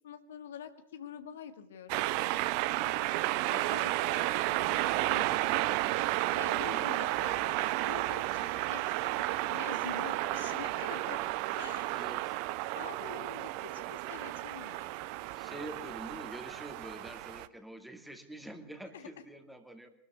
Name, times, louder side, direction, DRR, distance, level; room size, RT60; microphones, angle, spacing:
voice 1, 0.0-2.0 2.8-3.0 3.4-5.8 6.3-11.2 11.6-11.9 12.7-14.9 18.9-19.1, left 8 dB, 60° left, 9 dB, 1.7 m, -46 dB
sound 1, 1.9-17.5, right 17 dB, 45° right, 0.9 m, -32 dB
voice 2, 6.5-6.8 11.9-12.4 15.3-19.9, right 1 dB, ahead, 6 dB, 2.4 m, -46 dB
23.5 x 13.0 x 9.4 m, 0.76 s
figure-of-eight pair, 90°, 0 cm